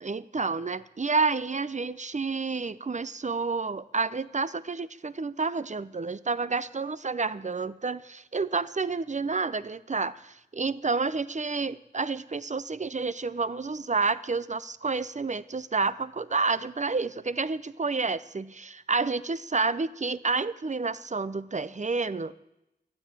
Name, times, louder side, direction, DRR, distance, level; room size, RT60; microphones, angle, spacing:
voice 1, 0.0-22.3, right 4 dB, 45° right, 16 dB, 0.7 m, -29 dB
13.0 x 9.7 x 9.0 m, 0.89 s
cardioid pair, 40°, 17 cm